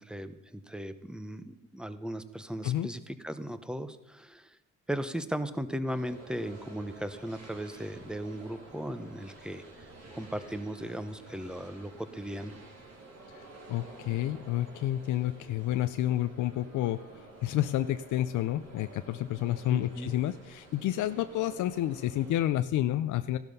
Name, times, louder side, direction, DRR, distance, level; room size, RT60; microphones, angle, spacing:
voice 1, 0.0-4.6 4.9-9.6 10.1-12.6 19.7-20.1, equal, 5° right, 12 dB, 1.0 m, -37 dB
sound 1, 5.9-22.4, right 2 dB, 55° right, 3.9 m, -51 dB
voice 2, 13.7-17.0 17.4-23.4, left 13 dB, 80° left, 10 dB, 0.6 m, -30 dB
15.0 x 12.0 x 5.4 m, 0.93 s
cardioid pair, 90°, 30 cm